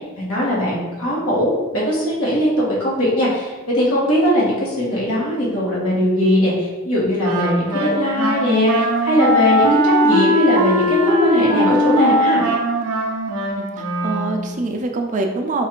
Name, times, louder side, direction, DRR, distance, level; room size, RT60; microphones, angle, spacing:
voice 1, 0.2-12.4, equal, 75° left, -6 dB, 1.3 m, -20 dB
Wind instrument woodwind instrument, 7.2-14.6, equal, 85° right, 0.6 m, -19 dB
voice 2, 13.6-15.7, right 3 dB, 35° right, 3 dB, 0.4 m, -25 dB
3.2 x 2.4 x 4.4 m, 1.2 s
head